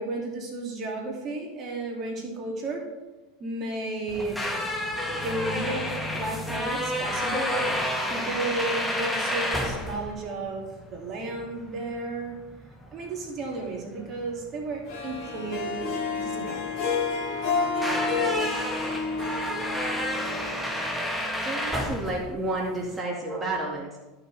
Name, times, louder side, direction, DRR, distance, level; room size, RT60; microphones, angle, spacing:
voice 1, 0.0-2.8 3.4-4.5 5.2-10.6 10.9-12.4 12.9-17.0, right 2 dB, 45° right, 0 dB, 2.5 m, -33 dB
sound 1, 4.1-23.0, left 1 dB, 5° left, 1.4 m, -31 dB
Harp, 14.9-21.2, left 4 dB, 55° left, 2.8 m, -30 dB
voice 2, 21.4-24.0, right 2 dB, 15° right, -3 dB, 2.0 m, -30 dB
13.5 x 6.2 x 3.4 m, 1.1 s
hypercardioid pair, 95°, 0 cm